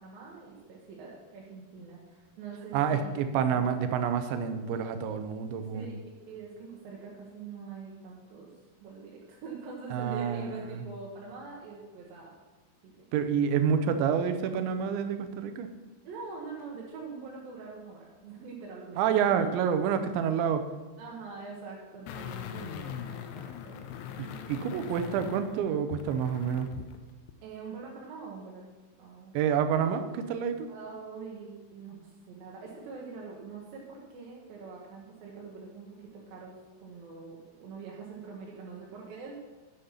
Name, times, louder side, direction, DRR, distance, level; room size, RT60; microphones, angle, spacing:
voice 1, 0.0-3.7 5.7-5.9 6.3-8.5 8.8-12.4 12.8-13.1 16.0-19.0 19.4-19.5 21.0-23.9 24.5-25.0 27.4-28.6 29.0-29.3 30.7-39.4, right 4 dB, 65° right, -3 dB, 2.7 m, -44 dB
voice 2, 2.7-5.9 9.9-10.8 13.1-15.7 19.0-20.7 24.2-26.7 29.3-30.7, right 7 dB, 90° right, 9 dB, 3.1 m, -28 dB
sound 1, 22.1-27.0 27.3-27.4, left 9 dB, 80° left, 2.6 m, -41 dB
10.0 x 7.3 x 5.7 m, 1.2 s
omnidirectional pair, 5.1 m